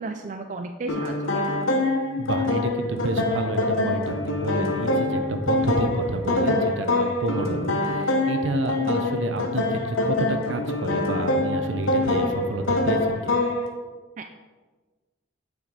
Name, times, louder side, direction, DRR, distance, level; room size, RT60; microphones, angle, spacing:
voice 1, 0.0-1.6 14.2-14.3, right 3 dB, 40° right, 6 dB, 0.3 m, -34 dB
sound 1, 0.9-13.7, left 2 dB, 85° left, 1.0 m, -25 dB
voice 2, 2.2-13.5, right 2 dB, 70° right, 7 dB, 0.7 m, -29 dB
8.8 x 5.2 x 4.0 m, 1.3 s
head